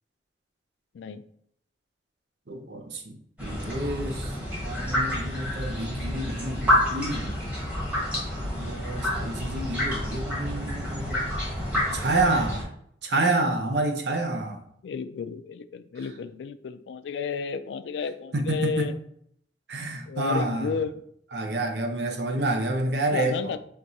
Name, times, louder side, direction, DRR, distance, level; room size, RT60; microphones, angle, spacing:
voice 1, 2.5-4.3 4.6-7.4 8.6-11.3 11.9-12.7 13.0-14.6 18.3-18.9 19.7-20.7 21.3-23.4, right 2 dB, 70° right, 4 dB, 0.7 m, -28 dB
sound 1, 3.4-12.6, left 1 dB, 10° right, 1.3 m, -29 dB
voice 2, 14.8-18.9 20.1-21.0 23.0-23.6, left 6 dB, 85° left, 12 dB, 0.3 m, -32 dB
4.6 x 3.6 x 2.7 m, 0.69 s
head